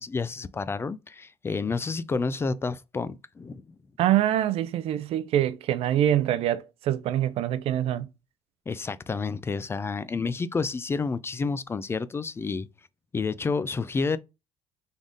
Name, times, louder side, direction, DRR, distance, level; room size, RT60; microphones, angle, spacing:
voice 1, 0.0-3.8 8.7-12.7 13.1-14.2, left 4 dB, 25° left, 0.3 m, -30 dB
voice 2, 4.0-8.1, right 12 dB, 65° right, 0.5 m, -25 dB
3.7 x 3.6 x 3.7 m
cardioid pair, 100°, 11 cm